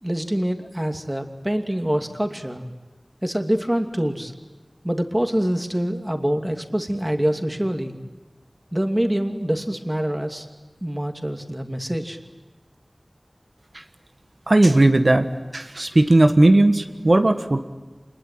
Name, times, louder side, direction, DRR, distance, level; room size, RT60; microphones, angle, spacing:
voice 1, 0.0-2.6 3.2-4.3 4.8-8.0 8.7-10.5 10.8-12.2, equal, 20° right, 5 dB, 2.7 m, -25 dB
voice 2, 14.5-15.3 15.5-17.6, right 2 dB, 60° right, 7 dB, 1.5 m, -16 dB
26.5 x 21.0 x 9.2 m, 1.3 s
wide cardioid pair, 45°, 0 cm